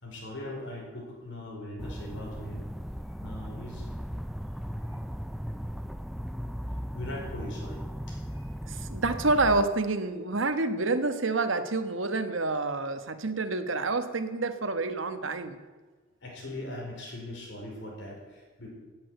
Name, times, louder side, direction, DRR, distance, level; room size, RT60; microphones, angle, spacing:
voice 1, 0.0-2.7 3.2-3.9 4.8-5.0 6.9-8.5 16.2-18.7, left 1 dB, 65° left, -2 dB, 4.6 m, -40 dB
sound 1, 1.8-9.6, equal, ahead, 0.4 m, -37 dB
voice 2, 8.7-15.6, right 3 dB, 80° right, 8 dB, 1.3 m, -28 dB
17.0 x 8.7 x 8.0 m, 1.3 s
head